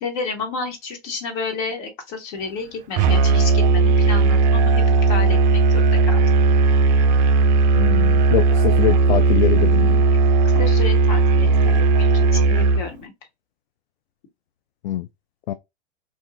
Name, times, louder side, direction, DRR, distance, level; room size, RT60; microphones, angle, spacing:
voice 1, 0.0-6.2 10.5-12.1 12.3-13.1, left 4 dB, 45° left, 1.4 m, -31 dB
Musical instrument, 3.0-12.9, right 3 dB, 45° right, 0.4 m, -16 dB
voice 2, 7.7-10.1 14.8-15.1 15.5-15.6, left 12 dB, 65° left, 0.5 m, -24 dB
2.6 x 2.4 x 3.8 m
hypercardioid pair, 115°, 33 cm